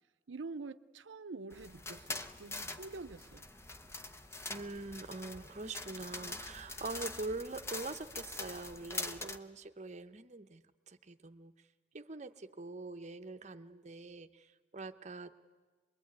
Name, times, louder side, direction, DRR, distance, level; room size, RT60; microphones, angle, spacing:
voice 1, 0.3-3.4, right 3 dB, 85° right, 0.7 m, -46 dB
sound 1, 1.5-9.4, left 2 dB, 15° left, 0.8 m, -44 dB
voice 2, 4.5-10.6 10.9-11.5 11.9-15.3, right 3 dB, 40° right, 0.9 m, -44 dB
24.5 x 21.5 x 9.6 m
head